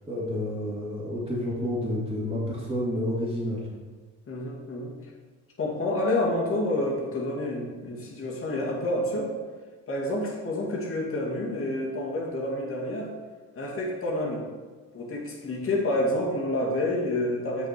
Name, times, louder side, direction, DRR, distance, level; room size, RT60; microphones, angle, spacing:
voice 1, 0.1-3.6, left 1 dB, 15° right, -10 dB, 2.7 m, -29 dB
voice 2, 4.3-5.0 5.6-9.4 9.9-13.1 13.5-14.5 14.9-17.7, left 1 dB, 45° left, -3 dB, 2.2 m, -28 dB
7.9 x 5.5 x 4.6 m, 1.4 s
cardioid pair, 90°, 30 cm